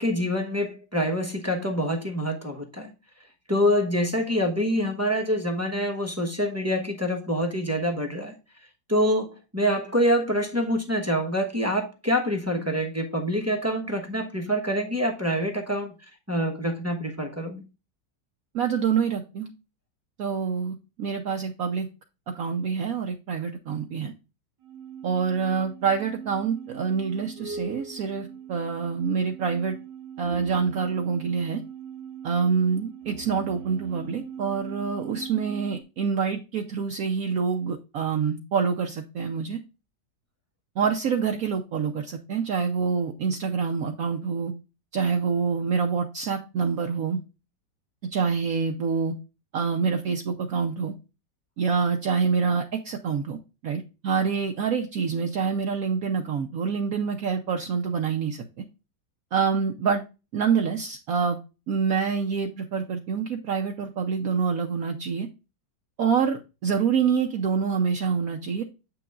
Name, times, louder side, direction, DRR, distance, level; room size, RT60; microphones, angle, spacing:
voice 1, 0.0-2.9 3.5-8.4 8.9-9.3 9.5-15.9 16.3-17.6, equal, 10° right, 0.8 m, -26 dB
voice 2, 18.5-19.5 20.2-21.9 22.3-24.1 25.0-29.8 30.2-31.6 32.2-39.6 40.8-44.5 44.9-47.2 48.1-49.1 49.5-50.9 51.6-53.4 53.6-58.4 59.3-60.0 60.3-61.4 61.7-65.3 66.0-68.6, right 6 dB, 65° right, 1.0 m, -26 dB
sound 1, 24.6-35.8, right 8 dB, 85° right, 1.7 m, -40 dB
8.0 x 6.0 x 2.4 m
omnidirectional pair, 1.9 m